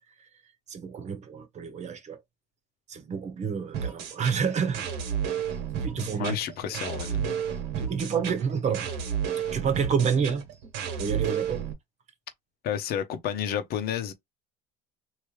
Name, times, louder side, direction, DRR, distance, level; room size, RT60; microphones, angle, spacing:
voice 1, 0.7-2.2 2.9-4.9 5.8-6.4 7.8-8.9 9.4-10.4 11.0-11.7, right 6 dB, 35° right, 1.0 m, -29 dB
sound 1, 3.7-11.7, right 8 dB, 70° right, 1.4 m, -32 dB
voice 2, 6.0-7.4 12.6-14.1, left 9 dB, 55° left, 0.9 m, -31 dB
3.2 x 2.8 x 3.2 m
supercardioid pair, 105°, 19 cm